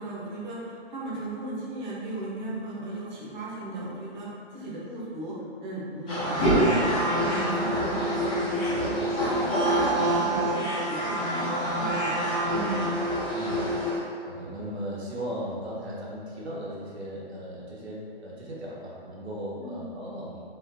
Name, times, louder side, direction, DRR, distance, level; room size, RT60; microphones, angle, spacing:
voice 1, 0.0-9.3 9.6-12.2 12.5-12.9 19.6-19.9, right 2 dB, 45° right, -7 dB, 1.3 m, -36 dB
sound 1, 6.1-14.0, right 1 dB, 10° left, 0.4 m, -26 dB
voice 2, 13.3-20.4, equal, 90° right, -6 dB, 1.1 m, -37 dB
5.4 x 3.4 x 2.3 m, 2.3 s
hypercardioid pair, 150°, 32 cm